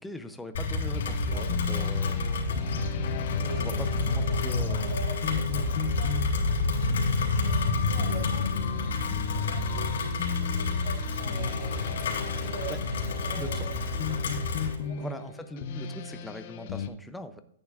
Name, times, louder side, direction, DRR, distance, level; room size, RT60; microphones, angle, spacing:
voice 1, 0.0-2.2 3.5-5.0 12.7-12.8 13.4-13.6 15.0-17.4, left 1 dB, 5° left, 8 dB, 0.5 m, -41 dB
Rain, 0.5-14.7, left 3 dB, 75° left, 2.5 m, -29 dB
sound 1, 0.9-16.9, left 7 dB, 45° left, 0.7 m, -35 dB
voice 2, 1.3-1.9 2.3-2.6 3.4-8.9 9.3-13.8 14.1-14.2 14.8-15.1, right 4 dB, 55° right, 3 dB, 2.0 m, -44 dB
10.0 x 8.7 x 2.4 m, 0.71 s
hypercardioid pair, 165°, 0 cm